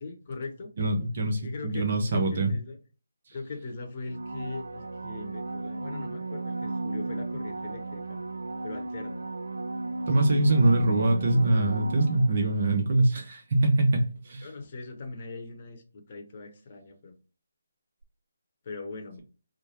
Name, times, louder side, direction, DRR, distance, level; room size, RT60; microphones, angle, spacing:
voice 1, 0.0-0.7 1.4-2.8 3.3-8.2 8.6-9.2 14.4-17.1 18.6-19.2, left 3 dB, 40° left, 0.8 m, -40 dB
voice 2, 0.8-2.5 10.1-14.5, right 2 dB, 50° right, 0.8 m, -24 dB
sound 1, 4.1-12.7 18.0-18.1, right 3 dB, 75° right, 0.3 m, -35 dB
3.1 x 2.2 x 4.2 m
figure-of-eight pair, 150°, 0 cm